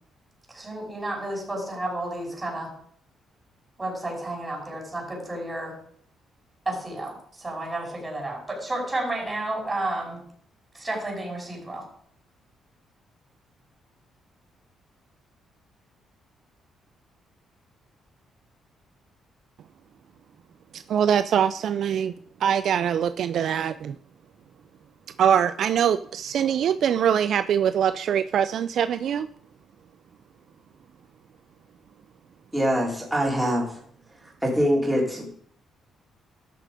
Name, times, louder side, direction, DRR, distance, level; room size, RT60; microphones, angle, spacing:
voice 1, 0.5-2.7 3.8-5.7 6.7-10.2 10.7-11.8, right 1 dB, 20° right, -1 dB, 5.6 m, -31 dB
voice 2, 20.7-22.1 22.4-24.0 25.2-29.3, right 8 dB, 65° right, 12 dB, 0.3 m, -23 dB
voice 3, 32.5-33.8 34.4-35.3, equal, 5° right, -3 dB, 3.4 m, -23 dB
12.5 x 6.6 x 5.1 m, 0.62 s
cardioid pair, 90°, 0 cm